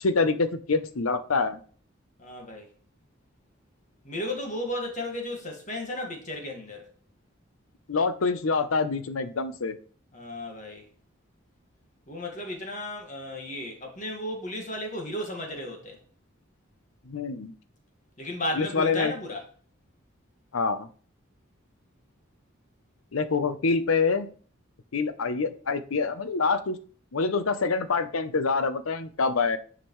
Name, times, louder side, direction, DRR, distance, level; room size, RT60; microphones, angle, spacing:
voice 1, 0.0-1.6 7.9-9.8 17.1-17.5 18.6-19.1 20.5-20.9 23.1-24.3 24.9-26.8 27.1-29.6, left 4 dB, 85° left, 0.7 m, -26 dB
voice 2, 2.2-2.7 4.0-6.9 10.1-10.9 12.1-16.0 18.2-19.5, left 1 dB, 35° left, 1.8 m, -34 dB
9.7 x 5.0 x 3.1 m
head